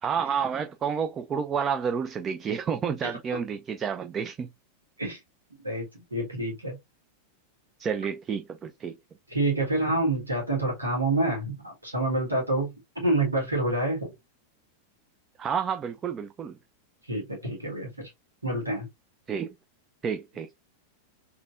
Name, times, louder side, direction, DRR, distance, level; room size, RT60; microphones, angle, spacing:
voice 1, 0.0-4.5 7.8-9.0 15.4-16.6 19.3-19.5 20.0-20.5, right 7 dB, 25° right, 0.4 m, -30 dB
voice 2, 5.6-6.8 9.3-14.1 17.1-18.1 18.4-18.9, right 2 dB, 80° right, 1.6 m, -27 dB
3.9 x 2.8 x 2.5 m
figure-of-eight pair, 90°, 0 cm